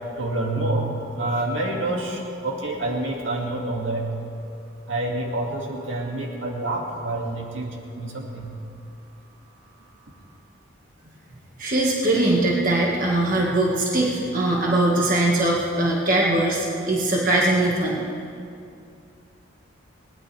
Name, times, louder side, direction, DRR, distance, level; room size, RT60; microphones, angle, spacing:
voice 1, 0.2-4.1 4.9-7.7 8.0-8.5, right 2 dB, 70° right, -1 dB, 2.4 m, -27 dB
voice 2, 11.6-18.0, right 2 dB, 40° right, -3 dB, 1.9 m, -21 dB
21.0 x 19.5 x 3.5 m, 2.5 s
head